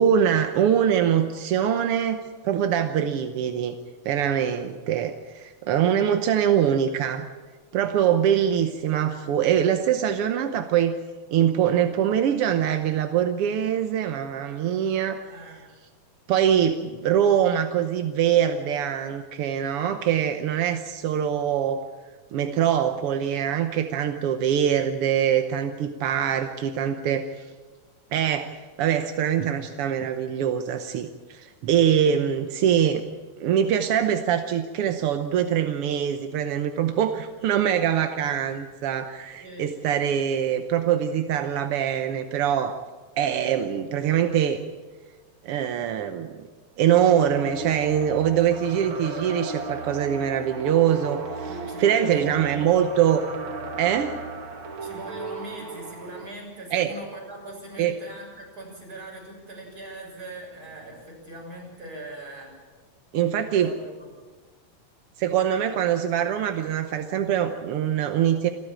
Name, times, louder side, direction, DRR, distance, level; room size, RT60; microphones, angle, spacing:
voice 1, 0.0-3.7 4.0-7.3 7.7-11.0 11.3-15.2 16.3-21.8 22.3-27.3 28.1-33.0 33.4-42.8 43.2-44.6 45.4-46.3 46.8-51.5 51.8-53.2 53.8-54.2 56.7-56.9 57.8-57.9 63.1-63.7 65.2-68.5, right 9 dB, 65° right, 7 dB, 1.5 m, -23 dB
voice 2, 15.3-15.7 39.4-39.7 51.4-52.9 54.8-62.5 63.4-64.1, right 2 dB, 30° right, -1 dB, 7.2 m, -40 dB
sound 1, 47.0-56.3, right 3 dB, 45° right, 2.7 m, -35 dB
28.0 x 13.5 x 8.9 m, 1.4 s
omnidirectional pair, 3.5 m